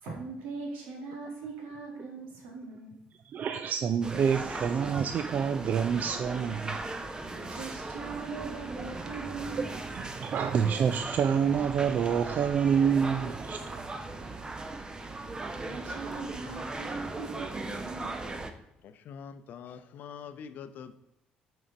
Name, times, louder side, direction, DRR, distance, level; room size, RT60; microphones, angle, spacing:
voice 1, 0.0-3.0 7.3-9.8 14.2-14.3 15.4-18.4, right 4 dB, 85° right, 0 dB, 2.1 m, -40 dB
voice 2, 3.2-6.8 7.5-7.6 9.9-13.8, right 7 dB, 55° right, 9 dB, 0.4 m, -27 dB
sound 1, 4.0-18.5, right 2 dB, 25° right, 0.8 m, -38 dB
voice 3, 18.8-20.9, left 7 dB, 65° left, 11 dB, 0.6 m, -44 dB
6.2 x 4.6 x 5.3 m, 0.86 s
supercardioid pair, 85°, 3 cm